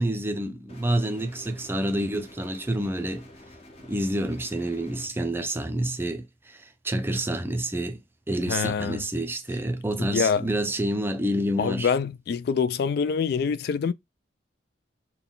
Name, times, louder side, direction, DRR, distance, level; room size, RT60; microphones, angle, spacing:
voice 1, 0.0-3.3 3.8-8.0 8.3-11.9, right 1 dB, 10° right, 0.4 m, -28 dB
sound 1, 0.7-5.1, left 1 dB, 30° left, 0.8 m, -49 dB
voice 2, 8.5-9.0 10.1-10.4 11.6-13.9, left 6 dB, 55° left, 0.3 m, -25 dB
4.0 x 2.2 x 3.7 m
head